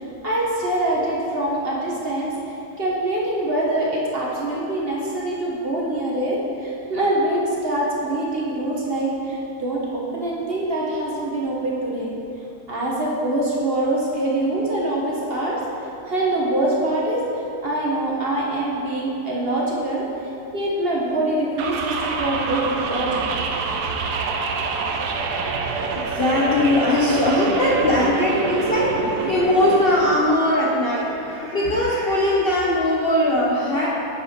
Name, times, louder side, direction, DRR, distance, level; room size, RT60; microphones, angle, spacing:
voice 1, 0.2-12.1 12.7-15.6 16.0-17.2 17.6-20.1 20.5-23.2, right 1 dB, 40° right, -4 dB, 1.2 m, -24 dB
sound 1, 21.6-30.2, right 4 dB, 75° right, 1.2 m, -26 dB
voice 2, 26.0-33.9, left 1 dB, 45° left, -5 dB, 0.8 m, -20 dB
8.8 x 4.9 x 5.1 m, 2.9 s
omnidirectional pair, 1.8 m